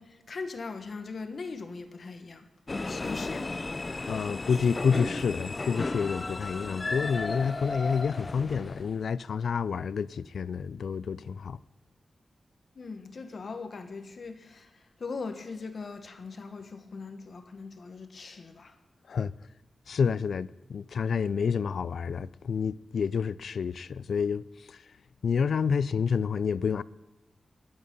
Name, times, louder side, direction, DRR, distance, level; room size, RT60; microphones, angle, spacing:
voice 1, 0.0-2.5 2.9-3.9 12.7-18.7, left 4 dB, 50° left, 1.3 m, -40 dB
sound 1, 2.7-9.0, left 3 dB, 30° left, 0.5 m, -34 dB
voice 2, 4.1-11.6 19.1-19.3 19.9-24.8 25.2-26.8, left 6 dB, 80° left, 0.4 m, -29 dB
22.0 x 8.8 x 5.4 m
wide cardioid pair, 155°, 0 cm